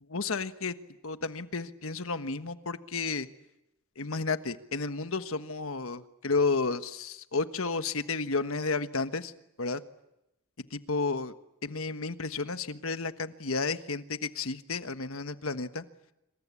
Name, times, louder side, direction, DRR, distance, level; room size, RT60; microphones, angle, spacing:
voice 1, 0.1-0.7 1.0-3.3 4.0-9.3 9.6-9.8 10.7-11.3 11.6-15.8, left 4 dB, 70° left, 10 dB, 1.3 m, -32 dB
27.0 x 26.0 x 8.4 m, 0.86 s
head